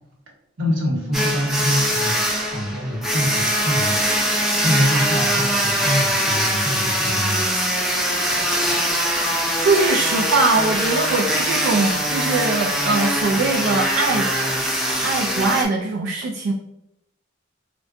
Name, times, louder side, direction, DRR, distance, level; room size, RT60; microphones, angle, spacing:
voice 1, 0.6-2.2 2.5-7.5, equal, 90° right, -2 dB, 1.0 m, -25 dB
sound 1, 1.1-15.6, equal, ahead, 0.4 m, -22 dB
voice 2, 9.6-14.3 15.0-16.5, right 3 dB, 75° right, 0 dB, 0.3 m, -21 dB
3.7 x 2.2 x 2.5 m, 0.83 s
head